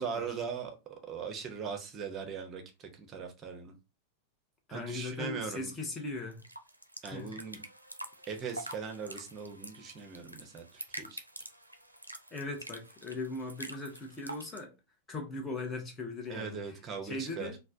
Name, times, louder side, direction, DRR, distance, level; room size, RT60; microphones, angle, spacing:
voice 1, 0.0-3.7 4.7-5.7 7.0-7.6 8.3-11.2 16.3-17.6, right 6 dB, 30° right, 0.7 m, -40 dB
voice 2, 4.7-6.4 7.0-7.3 12.3-14.7 15.1-16.8 17.0-17.6, left 2 dB, 20° left, 0.8 m, -39 dB
sound 1, 5.7-14.6, right 1 dB, 85° right, 0.4 m, -47 dB
3.2 x 2.2 x 2.6 m
figure-of-eight pair, 90°, 0 cm